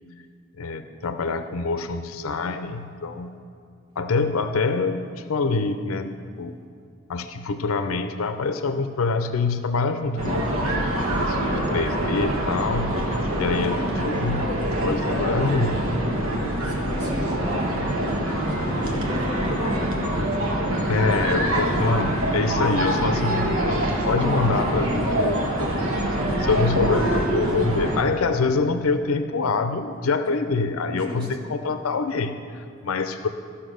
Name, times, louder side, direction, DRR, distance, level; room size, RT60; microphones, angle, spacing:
voice 1, 0.6-3.3 4.0-6.1 6.4-6.6 7.1-10.5 11.2-14.5 14.8-16.0 20.8-26.1 26.4-33.3, left 3 dB, 90° left, 9 dB, 0.6 m, -25 dB
sound 1, 10.2-28.0, right 1 dB, 75° right, 1.4 m, -24 dB
voice 2, 16.3-17.9 18.5-20.8 21.6-21.7 26.6-26.8 30.9-31.3, right 1 dB, 20° right, -2 dB, 1.7 m, -36 dB
13.5 x 5.8 x 6.4 m, 2.4 s
head